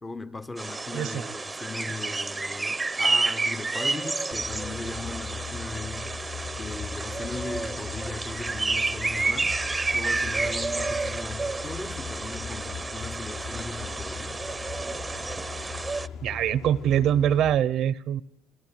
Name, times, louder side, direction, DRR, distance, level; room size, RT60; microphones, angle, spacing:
voice 1, 0.0-6.1 6.6-9.6 9.9-14.4, left 3 dB, 15° left, 0.9 m, -38 dB
sound 1, 0.6-16.1, right 3 dB, 10° right, 0.9 m, -30 dB
voice 2, 0.9-1.3 16.2-18.2, right 10 dB, 55° right, 0.9 m, -24 dB
sound 2, 4.3-17.6, left 6 dB, 70° left, 3.4 m, -39 dB
28.5 x 18.0 x 9.1 m
cardioid pair, 165°, 0 cm